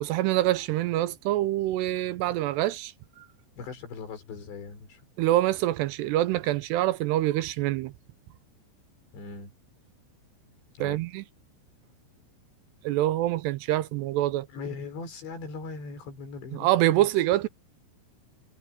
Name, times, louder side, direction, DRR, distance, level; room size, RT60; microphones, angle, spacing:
voice 1, 0.0-2.9 5.2-7.9 10.8-11.2 12.8-14.5 16.5-17.5, right 15 dB, 80° right, 2.7 m, -25 dB
voice 2, 3.6-5.0 9.1-9.5 10.8-11.0 14.5-17.1, left 4 dB, 75° left, 7.2 m, -40 dB
omnidirectional pair, 5.1 m